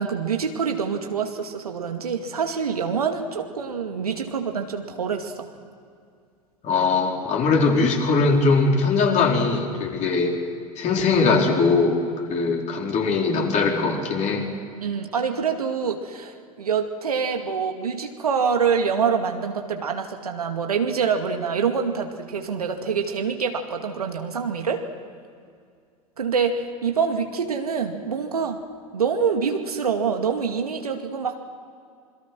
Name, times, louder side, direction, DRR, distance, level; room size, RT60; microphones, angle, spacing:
voice 1, 0.0-5.5 14.8-24.8 26.2-28.6 28.9-31.4, right 6 dB, 85° right, 4 dB, 2.2 m, -26 dB
voice 2, 6.6-10.4 10.8-12.0 12.3-14.5, left 4 dB, 40° left, 0 dB, 4.7 m, -21 dB
27.0 x 22.5 x 6.2 m, 2.2 s
figure-of-eight pair, 85°, 19 cm